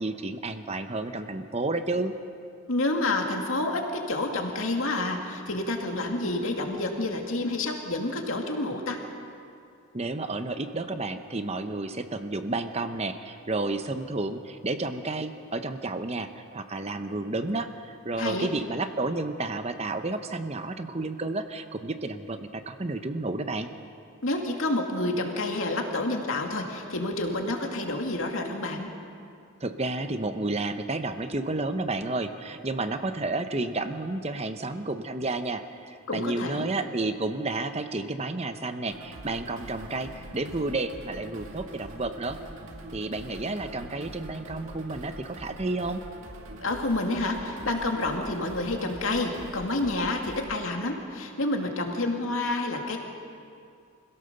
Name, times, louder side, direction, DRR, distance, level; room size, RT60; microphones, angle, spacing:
voice 1, 0.0-2.1 9.9-23.7 29.6-42.4 42.9-46.0, right 2 dB, 30° right, 8 dB, 0.9 m, -31 dB
voice 2, 2.7-9.0 18.2-18.5 24.2-28.9 36.1-36.7 46.6-53.0, left 2 dB, 65° left, 2 dB, 2.4 m, -29 dB
sound 1, 38.9-50.5, right 1 dB, 70° right, 1.9 m, -44 dB
26.0 x 16.5 x 6.8 m, 2.4 s
head